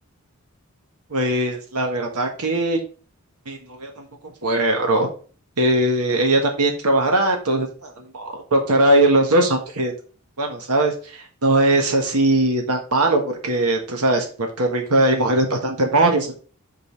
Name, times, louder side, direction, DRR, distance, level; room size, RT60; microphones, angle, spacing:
voice 1, 1.1-2.8 3.5-4.0 4.4-5.1 5.6-9.9 10.4-16.3, right 1 dB, 80° right, 3 dB, 1.6 m, -20 dB
5.4 x 5.1 x 5.4 m, 0.39 s
head